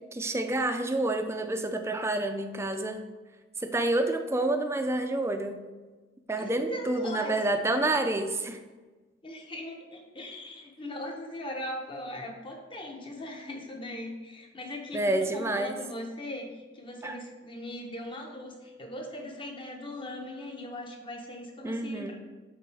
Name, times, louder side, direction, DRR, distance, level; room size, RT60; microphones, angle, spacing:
voice 1, 0.0-3.0 3.6-5.6 6.3-8.6 14.9-15.8 17.0-17.2 21.6-22.1, right 2 dB, 15° right, 6 dB, 0.4 m, -28 dB
voice 2, 6.4-7.4 9.2-22.1, left 1 dB, 30° left, 1 dB, 0.9 m, -39 dB
7.6 x 3.8 x 3.4 m, 1.3 s
head